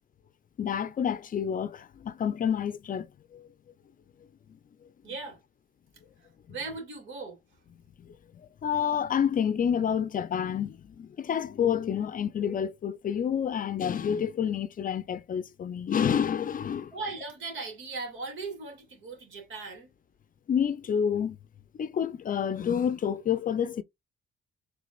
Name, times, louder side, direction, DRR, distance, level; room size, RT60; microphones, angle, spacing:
voice 1, 0.6-3.5 8.0-16.9 20.5-21.4 21.8-23.8, left 8 dB, 45° left, 0.5 m, -29 dB
voice 2, 5.0-5.4 6.2-7.4 16.9-19.9, right 3 dB, 75° right, 2.4 m, -38 dB
5.1 x 3.3 x 2.4 m
cardioid pair, 90°, 20 cm